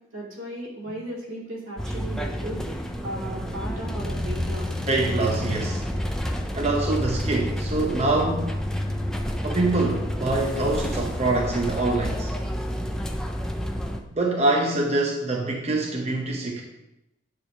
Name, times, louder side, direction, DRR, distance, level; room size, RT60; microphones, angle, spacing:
voice 1, 0.1-2.6 3.0-4.7 6.9-7.0, right 1 dB, 80° right, -4 dB, 2.7 m, -36 dB
sound 1, 1.8-14.0, equal, 5° left, 0.5 m, -29 dB
voice 2, 4.9-5.9 6.5-8.7 9.4-12.3 14.1-16.6, right 2 dB, 35° right, -1 dB, 0.8 m, -25 dB
9.4 x 3.5 x 6.1 m, 0.92 s
head